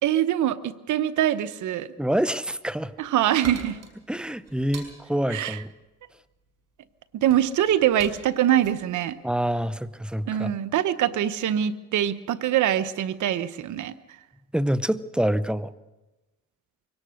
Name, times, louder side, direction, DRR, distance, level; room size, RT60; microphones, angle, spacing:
voice 1, 0.0-1.9 3.0-3.8 5.3-5.6 7.1-9.2 10.3-13.9, right 11 dB, 75° right, 12 dB, 1.0 m, -24 dB
voice 2, 2.0-2.9 4.1-5.7 9.2-10.5 14.5-15.7, right 1 dB, 5° right, 14 dB, 0.8 m, -26 dB
sound 1, 2.5-10.0, right 5 dB, 60° right, 5.6 m, -45 dB
23.0 x 18.0 x 6.4 m, 1.1 s
cardioid pair, 90°, 30 cm